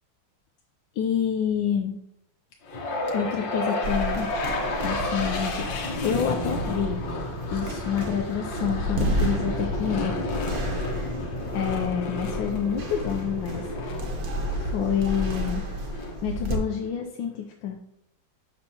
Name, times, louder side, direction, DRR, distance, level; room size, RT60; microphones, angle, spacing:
voice 1, 1.0-1.9 3.1-4.3 4.8-5.7 6.0-7.0 7.5-10.3 10.7-11.1 11.5-13.6 14.6-15.7 16.2-17.8, left 8 dB, 90° left, 3 dB, 1.4 m, -28 dB
sound 1, 2.7-16.8, left 2 dB, 75° left, 1.8 m, -31 dB
sound 2, 3.8-16.6, right 1 dB, 55° right, 1.4 m, -32 dB
7.6 x 6.2 x 2.8 m, 0.74 s
omnidirectional pair, 2.0 m